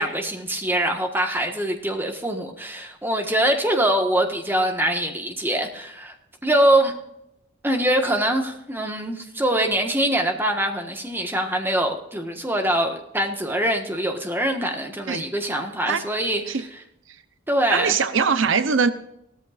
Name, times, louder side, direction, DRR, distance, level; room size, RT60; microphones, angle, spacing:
voice 1, 0.0-6.1 6.4-6.9 7.6-16.7 17.5-18.0, right 1 dB, 10° right, 1.4 m, -23 dB
voice 2, 17.7-18.9, right 5 dB, 85° right, 0.8 m, -21 dB
17.0 x 13.5 x 2.5 m
head